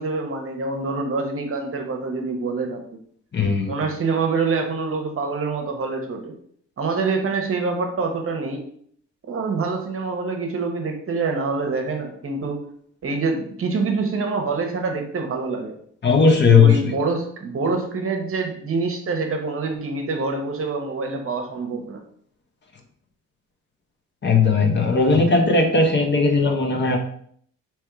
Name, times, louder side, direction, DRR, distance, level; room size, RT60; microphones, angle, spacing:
voice 1, 0.0-2.8 3.7-6.3 6.8-8.6 9.3-12.6 13.0-15.8 16.6-22.0, right 4 dB, 45° right, 3 dB, 1.0 m, -26 dB
voice 2, 3.3-3.8 16.0-16.9 24.2-27.0, left 4 dB, 35° left, 3 dB, 0.9 m, -17 dB
3.5 x 3.1 x 4.6 m, 0.63 s
cardioid pair, 90°, 30 cm